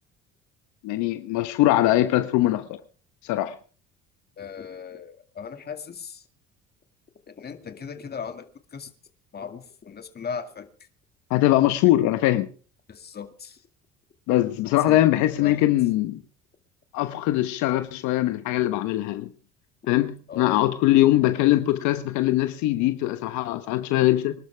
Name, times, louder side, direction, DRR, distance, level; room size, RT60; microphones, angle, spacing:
voice 1, 0.8-2.8 3.2-3.6 11.3-12.5 14.3-16.2 16.9-19.3 19.9-24.3, left 15 dB, 75° left, 1.2 m, -22 dB
voice 2, 4.4-6.2 7.3-8.5 8.7-8.9 9.3-10.7 12.9-13.6 14.7-15.0 15.4-15.6 20.3-20.7, left 6 dB, 35° left, 2.2 m, -37 dB
25.0 x 12.0 x 3.4 m
supercardioid pair, 90°, 29 cm